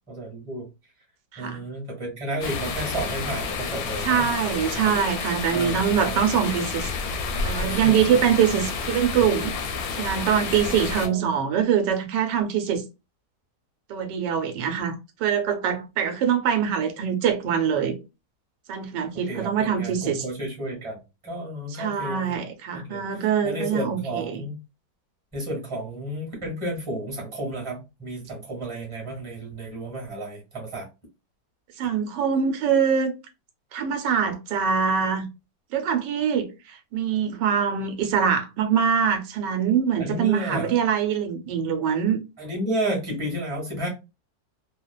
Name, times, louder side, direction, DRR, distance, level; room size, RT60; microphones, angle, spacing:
voice 1, 0.1-0.7 1.4-4.3 4.7-4.9 5.5-6.2 7.5-7.9 11.0-11.4 19.1-22.4 22.7-24.6 25.3-30.9 40.0-40.8 42.4-43.9, right 1 dB, 20° right, 1.1 m, -32 dB
sound 1, 2.4-11.1, left 5 dB, 70° left, 1.0 m, -30 dB
voice 2, 4.0-6.9 7.4-9.5 9.9-12.8 13.9-18.0 18.7-20.2 21.7-24.4 31.8-33.1 33.7-35.2 35.7-42.2, right 7 dB, 85° right, 1.2 m, -24 dB
3.0 x 2.1 x 2.2 m
omnidirectional pair, 1.8 m